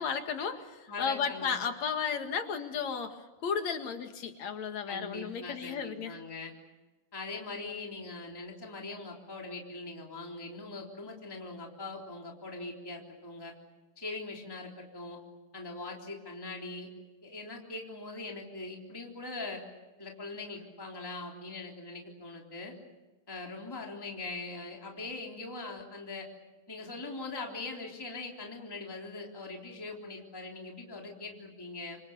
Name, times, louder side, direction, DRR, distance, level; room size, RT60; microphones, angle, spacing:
voice 1, 0.0-6.1, left 6 dB, 65° left, 6 dB, 3.0 m, -34 dB
voice 2, 0.9-1.5 4.9-6.5 7.1-13.5 14.0-15.2 15.5-16.9 17.2-19.6 20.0-22.7 23.3-26.3 26.7-32.0, left 3 dB, 5° left, 0 dB, 3.3 m, -41 dB
30.0 x 25.5 x 7.0 m, 1.1 s
omnidirectional pair, 3.5 m